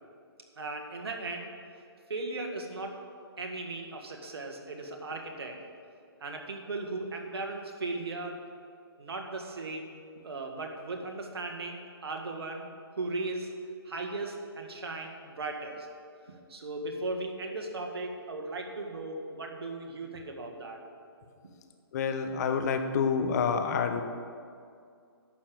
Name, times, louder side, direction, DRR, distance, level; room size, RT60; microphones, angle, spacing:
voice 1, 0.6-1.5 2.1-3.0 3.4-5.6 6.2-8.4 9.0-9.9 10.2-12.7 13.0-13.5 13.9-15.9 16.3-20.8, right 2 dB, 70° right, 2 dB, 1.9 m, -37 dB
voice 2, 21.9-24.0, left 6 dB, 40° left, 7 dB, 1.0 m, -28 dB
11.5 x 6.9 x 7.7 m, 2.3 s
hypercardioid pair, 145°, 13 cm